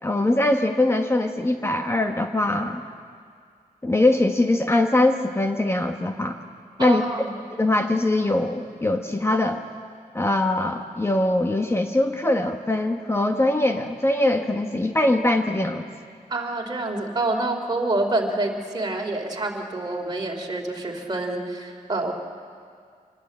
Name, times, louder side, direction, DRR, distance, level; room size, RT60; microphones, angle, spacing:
voice 1, 0.0-2.8 3.8-6.4 6.8-7.0 7.6-9.6 10.1-15.9, left 1 dB, 15° left, 5 dB, 1.0 m, -22 dB
voice 2, 6.8-7.4 16.3-22.1, right 2 dB, 30° right, 1 dB, 2.9 m, -27 dB
25.5 x 20.0 x 8.3 m, 2.1 s
wide cardioid pair, 150°, 15 cm